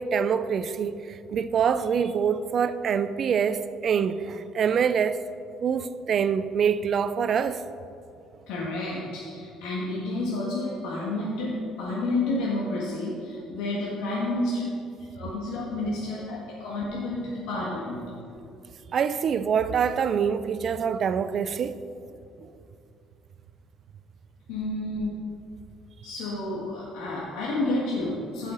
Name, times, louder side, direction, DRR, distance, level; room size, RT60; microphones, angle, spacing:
voice 1, 0.0-5.2 5.6-7.6 18.9-21.8 22.4-22.5, right 7 dB, 40° right, 0.3 m, -25 dB
voice 2, 8.5-14.6 15.1-18.0 24.5-25.2 26.0-28.5, left 2 dB, 85° left, 1.5 m, -30 dB
14.5 x 5.7 x 3.8 m
cardioid pair, 130°, 0 cm